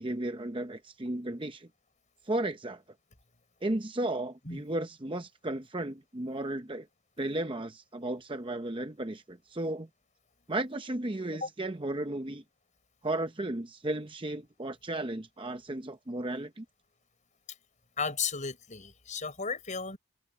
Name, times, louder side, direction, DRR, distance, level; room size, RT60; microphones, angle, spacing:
voice 1, 0.0-1.7 2.2-2.8 3.6-6.9 7.2-9.9 10.5-12.4 13.0-16.6, right 1 dB, 25° right, 0.7 m, -34 dB
voice 2, 18.0-20.0, left 5 dB, 35° left, 5.4 m, -34 dB
open air
head